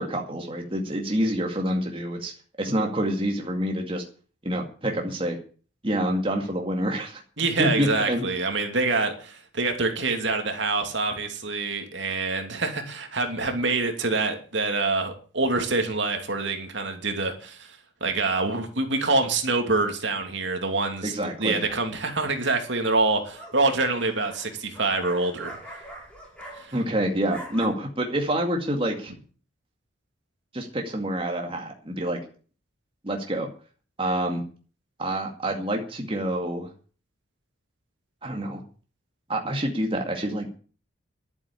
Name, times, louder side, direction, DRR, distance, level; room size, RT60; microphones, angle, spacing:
voice 1, 0.0-2.3 2.6-4.0 4.4-5.4 5.8-7.2 7.6-8.3 21.0-21.6 26.7-29.1 30.5-32.2 33.0-33.5 34.0-34.4 35.0-36.7 38.2-38.6 39.3-40.5, right 1 dB, 25° right, 2.2 m, -27 dB
voice 2, 7.4-17.6 18.0-21.1 21.4-25.6 26.6-26.7, right 3 dB, 65° right, 2.7 m, -26 dB
sound 1, 21.7-22.1 23.0-26.9 27.2-27.6, right 1 dB, 5° left, 5.0 m, -43 dB
11.5 x 9.4 x 8.6 m
head